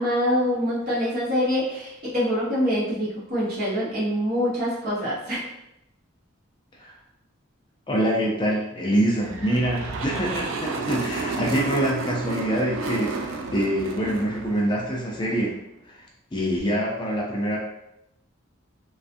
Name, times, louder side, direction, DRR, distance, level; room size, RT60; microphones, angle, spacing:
voice 1, 0.0-5.4, equal, 45° right, -9 dB, 1.1 m, -25 dB
voice 2, 7.9-15.5 15.9-16.0 16.3-17.6, right 1 dB, 20° left, -2 dB, 0.3 m, -25 dB
sound 1, 9.2-15.6, right 3 dB, 70° right, 0.3 m, -32 dB
2.5 x 2.3 x 2.5 m, 0.83 s
head